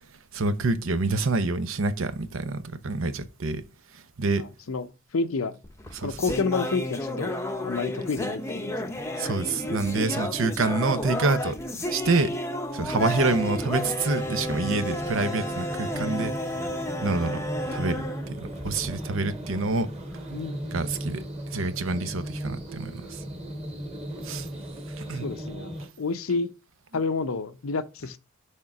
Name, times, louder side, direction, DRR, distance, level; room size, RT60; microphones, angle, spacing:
voice 1, 0.3-3.6 3.9-4.5 5.9-6.2 9.2-11.6 11.9-12.3 12.7-16.3 17.0-17.4 17.7-19.9 20.1-20.2 20.7-21.2 21.5-23.2 24.2-24.5 25.0-25.3, right 3 dB, 70° right, 0.8 m, -27 dB
voice 2, 4.4-5.6 6.0-7.3 7.6-8.8 15.9-16.1 20.3-20.6 25.2-26.5 26.9-28.2, left 4 dB, 80° left, 0.6 m, -29 dB
sound 1, 5.6-19.1, left 1 dB, 15° left, 0.7 m, -32 dB
sound 2, 13.2-25.9, equal, 30° right, 2.3 m, -37 dB
6.5 x 3.7 x 5.8 m
head